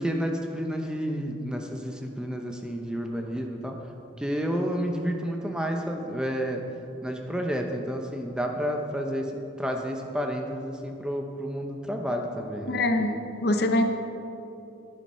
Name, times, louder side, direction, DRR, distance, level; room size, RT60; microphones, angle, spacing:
voice 1, 0.0-3.8 4.2-6.6 7.0-9.2 9.6-13.2, equal, 5° right, 2 dB, 0.7 m, -30 dB
voice 2, 12.7-13.1 13.4-13.8, left 1 dB, 55° left, 6 dB, 0.8 m, -23 dB
10.5 x 9.8 x 5.5 m, 2.8 s
head